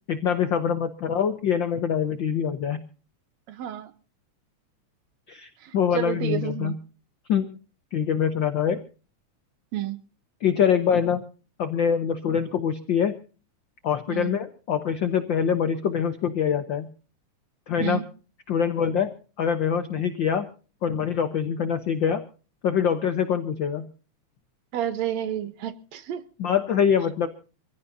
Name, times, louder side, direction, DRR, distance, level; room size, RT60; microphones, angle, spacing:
voice 1, 0.1-2.8 5.3-6.8 7.3-7.5 7.9-8.8 10.4-11.2 11.6-13.2 13.8-16.9 17.7-18.0 18.5-19.1 19.4-20.5 20.8-22.2 22.6-23.9 26.4-27.3, left 7 dB, 60° left, 8 dB, 1.2 m, -24 dB
voice 2, 3.5-3.9 5.6-6.7 9.7-10.0 14.1-14.3 17.8-18.0 24.7-26.2, right 11 dB, 70° right, 12 dB, 2.2 m, -30 dB
25.0 x 16.0 x 2.7 m, 0.37 s
omnidirectional pair, 3.4 m